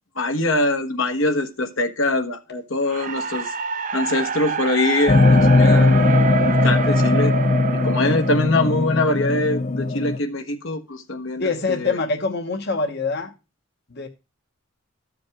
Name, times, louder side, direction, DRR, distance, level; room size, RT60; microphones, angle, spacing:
voice 1, 0.2-3.5 3.9-6.1 6.6-7.3 7.7-12.0, left 2 dB, 70° left, 1.2 m, -23 dB
sound 1, 2.9-9.0, right 6 dB, 40° right, 0.6 m, -27 dB
sound 2, 5.1-10.2, left 2 dB, 35° left, 0.5 m, -18 dB
voice 2, 11.4-13.3 13.9-14.1, left 4 dB, 55° left, 1.1 m, -24 dB
13.5 x 5.2 x 4.8 m
head